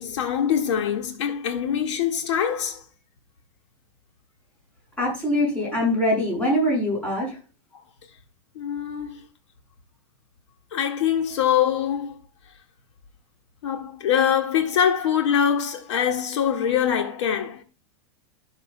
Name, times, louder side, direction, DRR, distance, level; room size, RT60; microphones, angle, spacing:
voice 1, 0.0-2.8 7.7-7.8 8.5-9.2 10.7-12.2 13.6-17.6, left 8 dB, 80° left, 1.7 m, -23 dB
voice 2, 5.0-7.4, left 1 dB, 10° left, 6.2 m, -23 dB
16.0 x 6.5 x 2.2 m
supercardioid pair, 165°, 15 cm